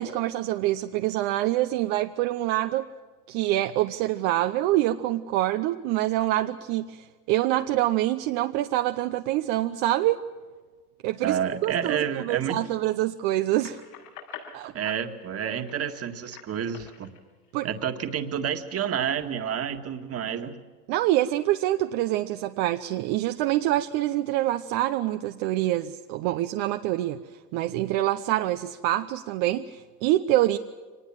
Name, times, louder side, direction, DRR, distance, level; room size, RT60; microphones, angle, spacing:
voice 1, 0.0-2.9 3.3-10.2 11.0-13.8 14.5-14.9 17.5-17.7 20.9-27.2 27.5-30.6, right 15 dB, 60° right, 7 dB, 0.9 m, -26 dB
voice 2, 11.2-12.6 14.7-17.1 17.6-20.5, right 8 dB, 30° right, 6 dB, 1.9 m, -29 dB
sound 1, 13.6-18.3 18.8-19.7, left 8 dB, 85° left, 6.9 m, -48 dB
24.0 x 20.0 x 7.4 m, 1.4 s
supercardioid pair, 120°, 46 cm